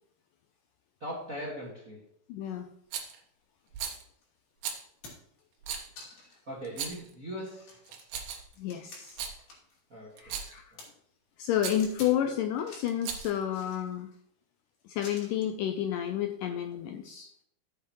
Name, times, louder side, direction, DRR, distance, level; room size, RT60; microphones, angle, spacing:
voice 1, 1.0-2.0 6.2-7.8 9.9-10.4 10.7-10.8, equal, 40° right, -3 dB, 1.1 m, -40 dB
voice 2, 2.3-2.7 8.6-9.2 10.2-10.7 11.4-14.1 14.9-17.3, left 10 dB, 80° left, 6 dB, 1.9 m, -31 dB
Rattle, 2.9-3.2 3.7-4.0 4.6-4.8 5.6-5.9 6.6-7.1 7.9-8.5 9.0-9.4 10.2-10.6 11.6-11.8 12.9-13.4, right 7 dB, 75° right, 3.0 m, -37 dB
sound 1, 4.2-4.3 4.7-5.4 6.0-6.4 6.9-7.0 7.4-9.8 10.1-10.9 11.8-12.2 12.5-13.0 13.5-14.2 15.0-15.5 16.6-16.8, left 3 dB, 55° left, 4.1 m, -50 dB
13.5 x 8.0 x 3.1 m, 0.69 s
omnidirectional pair, 4.4 m